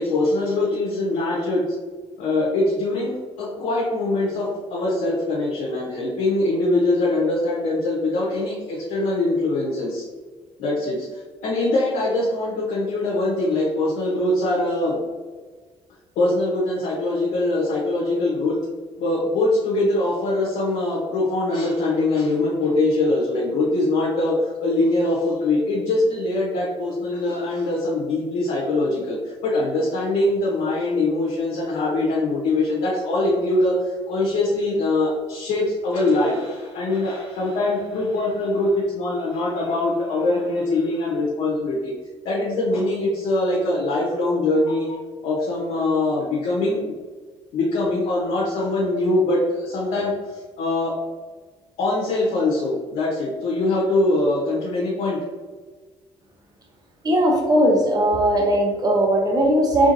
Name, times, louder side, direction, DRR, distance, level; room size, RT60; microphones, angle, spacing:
voice 1, 0.0-1.6 2.2-10.0 10.6-15.0 16.2-18.6 19.0-29.2 29.4-41.9 42.2-45.0 45.2-47.0 47.5-50.9 51.8-55.2, left 2 dB, 80° left, -5 dB, 0.8 m, -23 dB
voice 2, 57.0-59.9, right 1 dB, 30° right, 0 dB, 0.9 m, -18 dB
3.7 x 3.3 x 2.6 m, 1.4 s
supercardioid pair, 65°, 13 cm